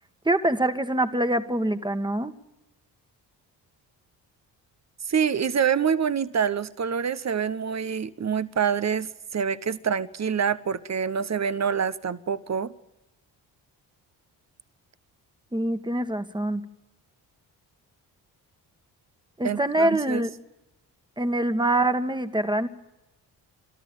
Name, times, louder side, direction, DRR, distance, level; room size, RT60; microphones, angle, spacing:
voice 1, 0.3-2.3 15.5-16.6 19.4-20.3 21.2-22.7, right 1 dB, 10° right, 1.8 m, -24 dB
voice 2, 5.1-12.7 19.4-20.2, right 7 dB, 35° right, 1.2 m, -26 dB
29.5 x 13.5 x 9.1 m
hypercardioid pair, 45°, 48 cm